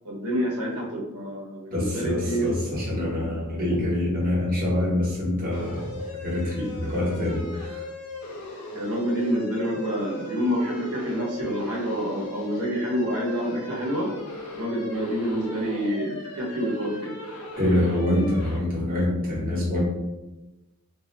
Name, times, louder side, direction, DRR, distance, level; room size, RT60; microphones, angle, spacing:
voice 1, 0.0-2.7 8.7-14.1 14.5-17.1, equal, 75° right, -3 dB, 0.8 m, -28 dB
voice 2, 1.7-7.8 17.6-19.8, left 1 dB, 40° right, -5 dB, 1.0 m, -25 dB
sound 1, 5.5-18.6, left 2 dB, 80° left, 0.5 m, -38 dB
2.4 x 2.1 x 3.9 m, 1.0 s
head